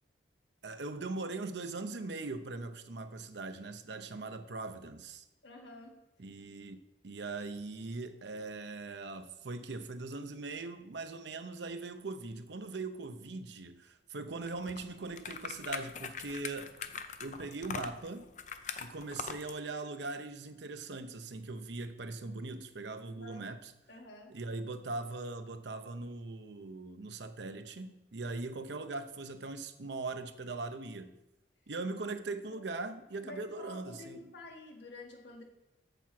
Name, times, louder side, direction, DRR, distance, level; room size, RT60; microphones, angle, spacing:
voice 1, 0.6-5.2 6.2-6.8 7.0-16.7 17.2-18.3 18.8-23.7 24.3-31.1 31.7-34.3, right 3 dB, 70° right, 0.7 m, -40 dB
voice 2, 5.4-5.9 23.2-23.5 23.9-24.3 32.5-32.6 33.2-35.4, left 2 dB, 75° left, 1.8 m, -49 dB
sound 1, 14.5-19.6, left 6 dB, 40° left, 0.5 m, -42 dB
7.1 x 7.0 x 5.9 m
head